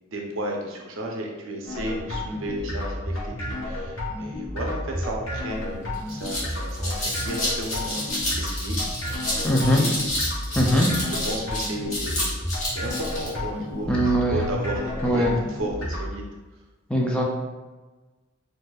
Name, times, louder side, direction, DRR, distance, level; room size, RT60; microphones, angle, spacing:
voice 1, 0.1-10.2 10.5-12.4 12.7-16.2, right 1 dB, 70° right, 0 dB, 0.6 m, -34 dB
sound 1, 1.7-16.2, left 1 dB, 65° left, 1.1 m, -31 dB
sound 2, 5.5-5.6 5.9-13.3, left 1 dB, 35° left, 1.0 m, -30 dB
voice 2, 9.4-9.8 10.5-10.9 13.9-14.5 15.0-15.3 16.9-17.2, equal, 5° left, -2 dB, 0.4 m, -21 dB
4.3 x 2.5 x 2.3 m, 1.2 s
head